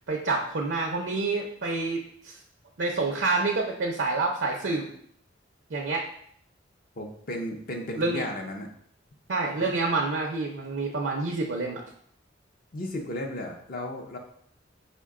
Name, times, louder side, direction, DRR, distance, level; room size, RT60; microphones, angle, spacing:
voice 1, 0.1-2.3 2.8-4.9 5.7-6.0 8.0-8.2 9.3-11.8, right 3 dB, 65° right, 0 dB, 0.5 m, -28 dB
voice 2, 7.0-8.7 12.7-14.2, left 1 dB, 50° left, 2 dB, 0.5 m, -34 dB
5.2 x 2.2 x 3.6 m, 0.65 s
head